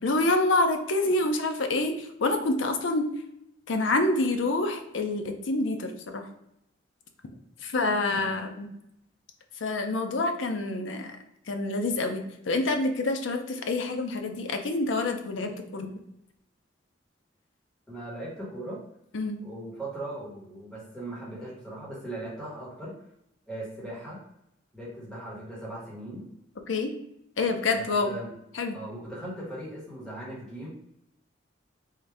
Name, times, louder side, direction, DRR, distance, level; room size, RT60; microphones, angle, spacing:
voice 1, 0.0-3.1 3.7-6.3 7.6-8.7 9.6-11.2 11.5-15.9 19.1-19.4 26.7-26.9 27.4-28.2 28.5-28.8, left 2 dB, 80° left, 5 dB, 0.6 m, -27 dB
voice 2, 17.9-18.8 19.4-22.9 23.5-24.2 24.7-26.2 27.7-28.3 28.7-30.7, right 1 dB, 5° left, -8 dB, 1.4 m, -39 dB
3.6 x 2.7 x 3.3 m, 0.80 s
head